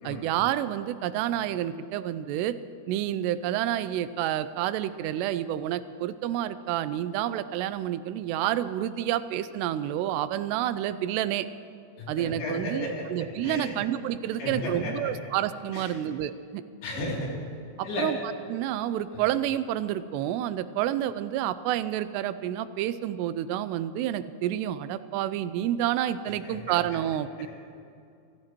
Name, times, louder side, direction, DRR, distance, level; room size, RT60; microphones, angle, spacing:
voice 1, 0.0-2.6 2.9-11.5 12.1-16.6 17.8-27.5, right 12 dB, 90° right, 13 dB, 2.7 m, -29 dB
voice 2, 12.0-13.0 13.4-13.7 14.4-15.1 15.7-15.9 16.8-17.3 17.8-18.1 26.4-26.8, left 1 dB, 70° left, -4 dB, 4.9 m, -33 dB
27.5 x 14.5 x 3.0 m, 2.4 s
omnidirectional pair, 4.8 m